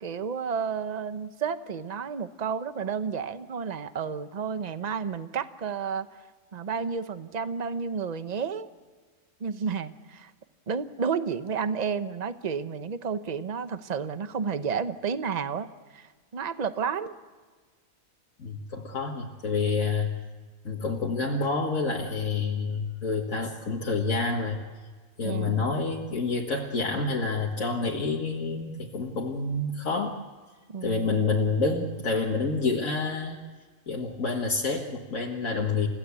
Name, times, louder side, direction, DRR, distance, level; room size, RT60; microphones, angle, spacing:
voice 1, 0.0-6.1 6.5-8.7 9.4-10.3 10.7-17.1 25.2-25.7 30.7-31.2, right 6 dB, 35° right, 11 dB, 0.9 m, -31 dB
voice 2, 18.4-20.1 20.6-24.6 25.2-30.2 30.8-33.4 33.9-35.9, left 4 dB, 75° left, -1 dB, 2.0 m, -28 dB
30.0 x 16.0 x 8.4 m, 1.5 s
omnidirectional pair, 1.4 m